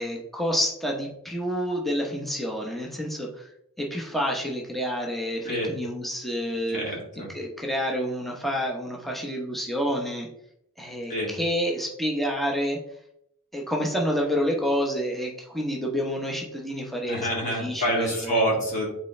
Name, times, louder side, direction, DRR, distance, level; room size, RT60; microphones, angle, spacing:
voice 1, 0.0-3.5 3.8-6.8 7.3-10.3 10.8-12.8 13.5-18.4, equal, ahead, -1 dB, 0.8 m, -28 dB
voice 2, 6.7-7.3 11.1-11.3 17.1-18.9, equal, 35° left, -3 dB, 2.2 m, -27 dB
8.0 x 4.2 x 3.2 m, 0.76 s
head